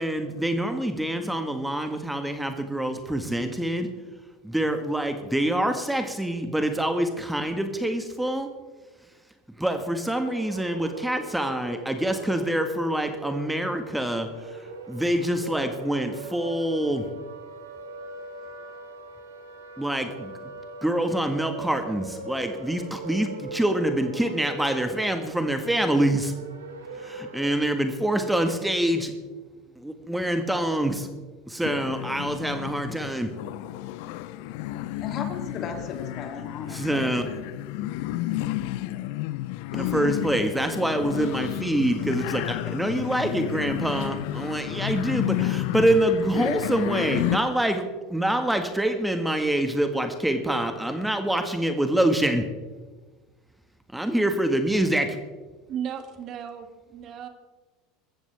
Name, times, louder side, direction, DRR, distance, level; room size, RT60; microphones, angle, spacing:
voice 1, 0.0-3.9 4.4-8.5 9.6-17.1 19.8-20.3 20.8-26.3 26.9-29.1 29.8-31.1 31.5-33.3 36.7-37.2 39.7-47.8 48.1-52.5 53.9-55.2, right 1 dB, 5° right, 6 dB, 1.6 m, -26 dB
sound 1, 10.2-27.5, right 2 dB, 90° right, 2.2 m, -40 dB
sound 2, 31.6-47.4, left 15 dB, 65° left, 0.7 m, -31 dB
voice 2, 34.9-37.1, left 5 dB, 45° left, 4 dB, 2.9 m, -36 dB
voice 3, 55.7-57.3, right 8 dB, 45° right, 7 dB, 2.0 m, -35 dB
21.5 x 14.5 x 3.5 m, 1.3 s
hypercardioid pair, 80°, 0 cm